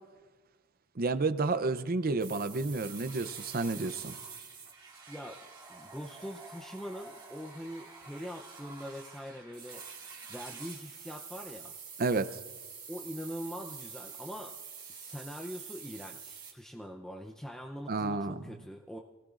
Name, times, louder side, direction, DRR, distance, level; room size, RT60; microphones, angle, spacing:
voice 1, 1.0-4.2 12.0-12.3 17.9-18.5, right 3 dB, 45° right, 12 dB, 0.6 m, -30 dB
sound 1, 2.2-16.5, right 5 dB, 20° right, 2.2 m, -47 dB
voice 2, 5.1-5.4 5.7-9.8 10.3-11.8 12.9-14.5 14.9-19.0, equal, 5° left, 1 dB, 0.6 m, -43 dB
27.0 x 19.0 x 2.5 m, 1.3 s
head